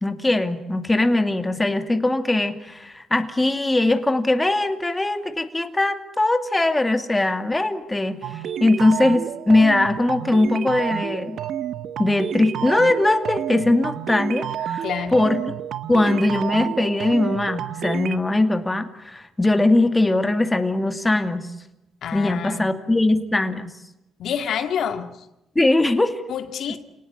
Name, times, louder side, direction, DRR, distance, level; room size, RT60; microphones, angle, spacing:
voice 1, 0.0-11.4 12.0-14.8 15.1-15.4 15.9-21.5 22.1-23.7 25.6-26.2, left 2 dB, 15° left, 2.5 m, -21 dB
sound 1, 8.2-18.2, right 10 dB, 70° right, 1.1 m, -30 dB
voice 2, 14.8-15.2 22.0-22.7 24.2-25.1 26.3-26.8, left 8 dB, 70° left, 2.1 m, -27 dB
28.5 x 19.0 x 9.7 m
cardioid pair, 90°, 0 cm